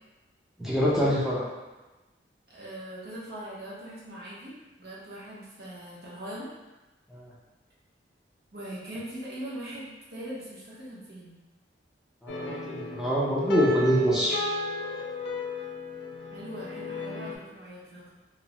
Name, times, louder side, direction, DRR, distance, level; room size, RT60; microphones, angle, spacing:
voice 1, 0.6-1.4 7.1-7.3 12.2-14.4, equal, ahead, -8 dB, 0.5 m, -25 dB
voice 2, 2.5-6.5 8.5-11.4 16.3-18.1, right 1 dB, 55° right, -6 dB, 0.7 m, -41 dB
sound 1, 12.3-17.4, left 3 dB, 65° left, 0.3 m, -34 dB
2.9 x 2.0 x 2.8 m, 1.1 s
head